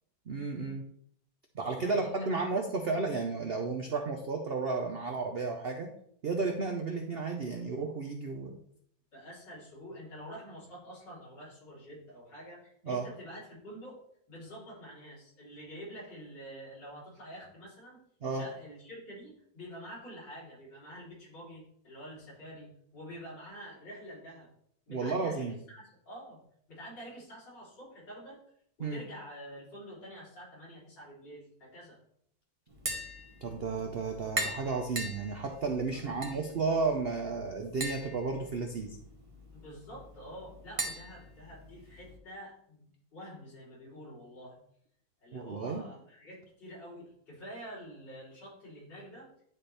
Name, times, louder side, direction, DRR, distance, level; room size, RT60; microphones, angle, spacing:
voice 1, 0.3-0.8 1.5-5.9 6.2-8.6 12.9-13.1 18.2-18.4 24.9-25.5 28.8-29.0 33.4-39.0 45.3-45.8, right 4 dB, 65° right, 4 dB, 0.6 m, -33 dB
voice 2, 1.8-2.5 9.1-14.0 14.3-18.0 18.3-24.5 24.9-26.4 26.7-28.4 28.8-32.0 35.9-36.3 39.5-44.6 45.2-49.3, equal, 75° left, -8 dB, 4.2 m, -47 dB
Tap, 32.7-42.2, right 1 dB, 25° right, 1.0 m, -41 dB
10.5 x 4.3 x 3.3 m, 0.68 s
omnidirectional pair, 1.9 m